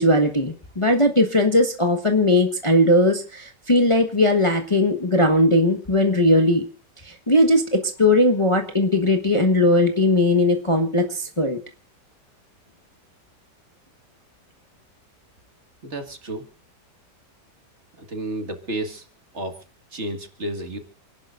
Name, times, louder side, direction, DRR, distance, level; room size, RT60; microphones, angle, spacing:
voice 1, 0.0-6.7 7.0-11.6, left 1 dB, 20° left, 5 dB, 1.2 m, -19 dB
voice 2, 15.8-16.4 18.0-19.1 19.3-19.6 19.9-20.8, right 1 dB, 40° right, 6 dB, 2.1 m, -31 dB
29.0 x 11.5 x 2.5 m, 0.34 s
omnidirectional pair, 1.9 m